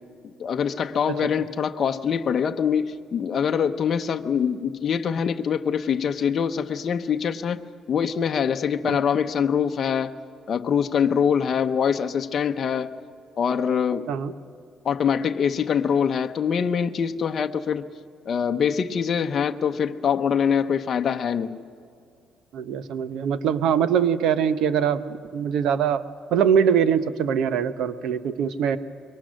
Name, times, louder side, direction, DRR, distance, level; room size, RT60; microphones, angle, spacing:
voice 1, 0.4-7.6 7.9-10.1 10.5-12.9 13.4-14.1 14.8-17.9 18.3-21.6, left 7 dB, 40° left, 5 dB, 0.8 m, -24 dB
voice 2, 22.5-25.0 25.3-26.0 26.3-28.8, right 8 dB, 75° right, 12 dB, 0.9 m, -22 dB
25.5 x 22.5 x 6.4 m, 2.3 s
cardioid pair, 135°, 0 cm